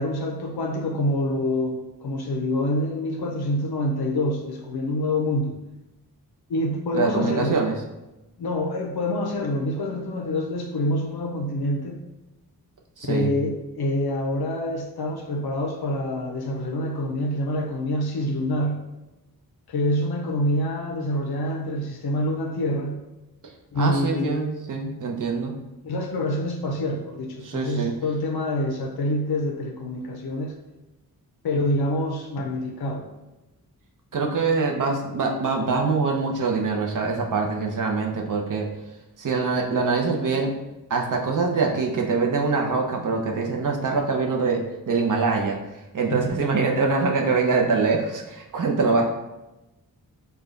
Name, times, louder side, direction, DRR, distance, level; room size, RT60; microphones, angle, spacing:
voice 1, 0.0-5.6 6.5-7.7 8.4-12.0 13.0-18.8 19.7-23.0 23.7-24.4 25.8-30.5 31.4-33.0 46.1-46.3, left 1 dB, 90° left, 1 dB, 0.7 m, -26 dB
voice 2, 6.9-7.8 13.0-13.3 23.7-25.6 27.4-27.9 34.1-38.7 39.2-40.5 40.9-45.6 45.9-49.1, right 4 dB, 55° right, 1 dB, 0.8 m, -24 dB
5.4 x 2.3 x 3.9 m, 1.0 s
wide cardioid pair, 145°, 37 cm